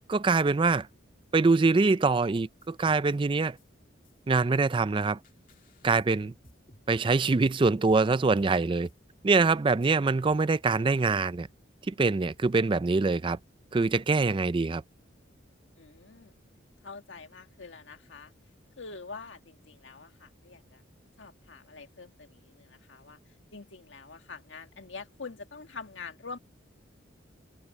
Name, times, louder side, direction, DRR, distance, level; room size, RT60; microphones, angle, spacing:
voice 1, 0.1-0.9 1.3-3.6 4.3-5.2 5.8-6.3 6.9-8.9 9.2-11.5 11.9-13.4 13.7-14.8, right 4 dB, 25° right, 0.4 m, -24 dB
sound 1, 2.1-3.1 3.6-3.7 4.0-4.1 4.4-7.0 7.4-7.5 7.9-10.4, left 1 dB, 45° left, 2.2 m, -55 dB
voice 2, 15.8-16.3 16.8-18.3 18.8-20.8 21.2-26.4, left 4 dB, 80° left, 1.9 m, -45 dB
head